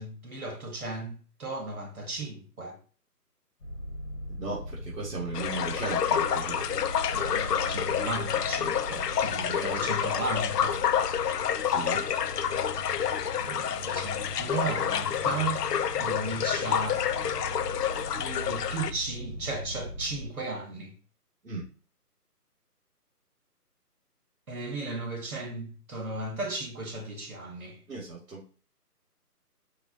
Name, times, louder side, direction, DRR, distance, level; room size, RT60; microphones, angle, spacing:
voice 1, 0.0-2.8 7.1-10.8 13.4-15.6 16.0-17.0 18.1-20.9 24.5-27.8, right 2 dB, 65° right, 1.3 m, -35 dB
sound 1, 3.6-20.3, left 1 dB, 45° left, 1.1 m, -40 dB
voice 2, 4.3-6.8 11.6-12.1 21.4-21.6 27.9-28.4, right 3 dB, 85° right, 1.6 m, -36 dB
sound 2, 5.3-18.9, left 8 dB, 80° left, 0.5 m, -28 dB
4.7 x 2.7 x 2.7 m
hypercardioid pair, 175°, 48 cm